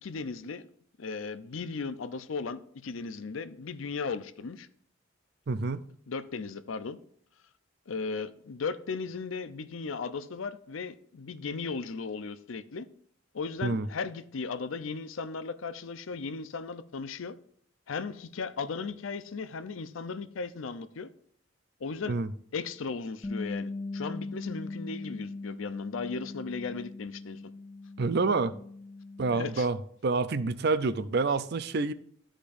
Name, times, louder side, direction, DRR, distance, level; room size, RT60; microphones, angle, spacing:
voice 1, 0.0-0.7 1.0-4.7 6.1-7.0 7.9-12.9 13.3-17.4 17.9-21.1 21.8-22.2 22.5-27.4 29.3-29.7, left 4 dB, 90° left, 0.6 m, -36 dB
voice 2, 5.5-5.8 13.6-13.9 22.1-22.3 28.0-28.6 29.2-29.8 30.0-31.9, right 3 dB, 55° right, 0.5 m, -27 dB
Bass guitar, 23.2-29.5, left 3 dB, 15° left, 0.4 m, -40 dB
13.5 x 5.1 x 2.5 m
head